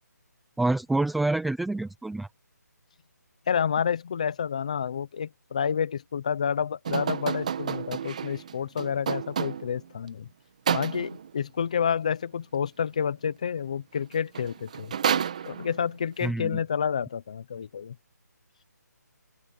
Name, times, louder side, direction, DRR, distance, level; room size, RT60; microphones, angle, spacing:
voice 1, 0.6-2.3 16.2-16.6, right 2 dB, ahead, 0.4 m, -27 dB
voice 2, 3.5-10.3 10.7-14.9 15.4-17.9, left 7 dB, 20° left, 0.8 m, -29 dB
sound 1, 6.9-9.9 10.7-11.3 14.0-14.1 14.3-15.9, right 8 dB, 25° right, 1.2 m, -30 dB
open air
hypercardioid pair, 175°, 10 cm